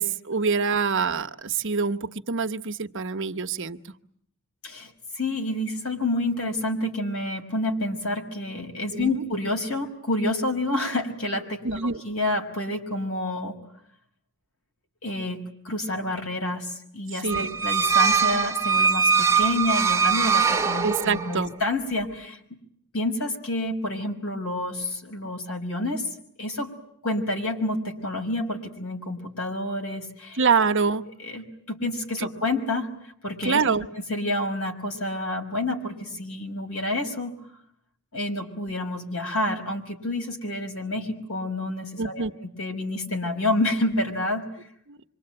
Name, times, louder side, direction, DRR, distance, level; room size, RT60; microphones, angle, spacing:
voice 1, 0.0-3.8 8.9-9.2 11.6-12.0 17.2-17.6 20.8-21.5 30.4-31.0 33.4-33.9 42.0-42.3 44.9-45.0, right 5 dB, 60° right, 7 dB, 1.1 m, -25 dB
voice 2, 4.6-13.6 15.0-22.6 22.9-26.1 26.4-26.7 27.0-30.4 31.1-32.9 33.2-33.6 33.9-37.4 38.1-44.5, left 1 dB, 75° left, 4 dB, 5.5 m, -29 dB
sound 1, 17.3-21.4, right 6 dB, 15° right, 1.1 m, -22 dB
27.0 x 25.0 x 9.0 m, 0.69 s
head